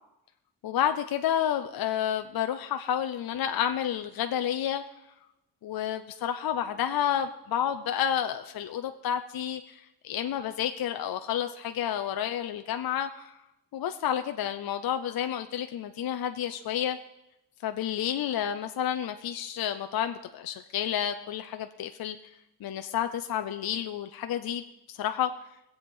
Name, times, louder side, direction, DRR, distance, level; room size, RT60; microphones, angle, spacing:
voice 1, 0.6-4.8 5.6-13.4 13.7-17.0 17.6-22.2 22.6-25.3, left 10 dB, 60° left, 7 dB, 0.6 m, -30 dB
21.5 x 7.9 x 5.4 m, 0.87 s
wide cardioid pair, 180°, 42 cm